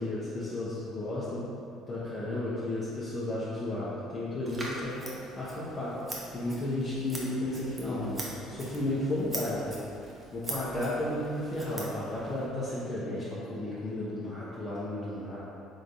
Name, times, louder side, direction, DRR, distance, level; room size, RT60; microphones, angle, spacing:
voice 1, 0.0-1.4 1.9-5.0 5.4-5.9 6.3-9.8 10.3-15.4, left 1 dB, 35° left, -10 dB, 1.0 m, -33 dB
Scissors, 4.5-12.5, right 1 dB, 25° right, 0.9 m, -43 dB
3.9 x 3.2 x 4.1 m, 2.6 s
cardioid pair, 100°, 0 cm